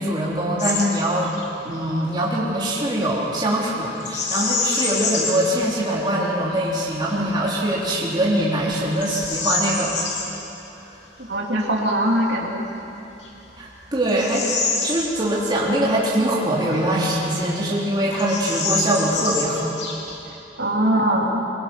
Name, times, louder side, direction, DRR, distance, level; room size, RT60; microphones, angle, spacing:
voice 1, 0.0-1.3 1.6-10.1 13.6-14.5 14.8-19.7, right 1 dB, 25° right, -6 dB, 3.3 m, -23 dB
Bird vocalization bird call bird song, 0.6-0.9 1.2-1.5 4.0-5.5 6.1-6.2 6.8-7.2 7.7-7.8 8.4-10.3 12.4-12.5 13.1-15.6 15.9-16.0 16.7-17.5 17.8-17.9 18.1-20.3, left 4 dB, 90° left, 3.3 m, -27 dB
voice 2, 11.3-12.6 20.6-21.4, right 1 dB, 70° right, -1 dB, 3.1 m, -21 dB
23.5 x 22.0 x 6.0 m, 3.0 s
head